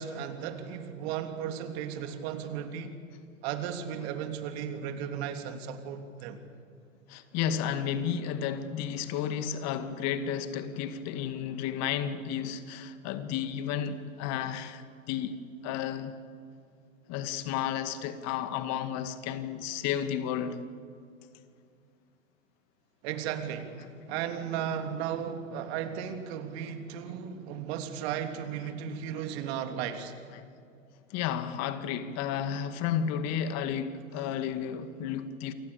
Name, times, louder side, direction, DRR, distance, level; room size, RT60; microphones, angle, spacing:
voice 1, 0.0-2.9 3.4-6.4 23.0-30.1, right 8 dB, 50° right, 3.2 m, -35 dB
voice 2, 7.1-15.4 15.6-16.1 17.1-20.6 30.3-30.5 31.1-35.5, left 9 dB, 40° left, 2.1 m, -32 dB
29.0 x 24.5 x 7.0 m
hypercardioid pair, 105°, 40 cm